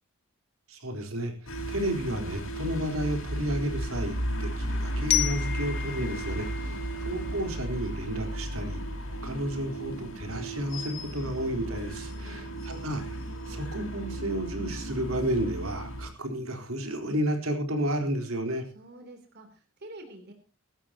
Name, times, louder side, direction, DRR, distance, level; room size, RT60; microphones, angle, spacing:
voice 1, 0.7-8.8 9.2-13.1 13.5-18.6, right 1 dB, 80° right, 4 dB, 3.9 m, -32 dB
sound 1, 1.5-16.1, right 1 dB, 65° left, 5.5 m, -34 dB
Glockenspiel, 5.1-8.0, left 13 dB, 50° left, 1.8 m, -32 dB
voice 2, 12.2-12.6 18.7-20.3, right 1 dB, 50° right, 5 dB, 3.3 m, -48 dB
23.0 x 12.5 x 2.9 m, 0.34 s
head